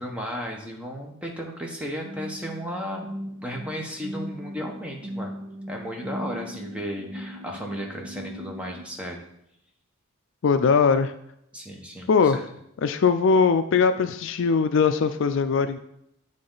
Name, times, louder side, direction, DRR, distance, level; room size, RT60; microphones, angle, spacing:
voice 1, 0.0-3.1 3.4-5.3 5.7-9.2 11.5-12.4, equal, 5° right, 0 dB, 1.1 m, -34 dB
sound 1, 2.0-8.9, equal, 60° right, 1.1 m, -38 dB
voice 2, 10.4-11.1 12.1-12.4 12.8-15.8, left 5 dB, 65° left, 10 dB, 0.4 m, -20 dB
9.4 x 3.9 x 3.9 m, 0.76 s
head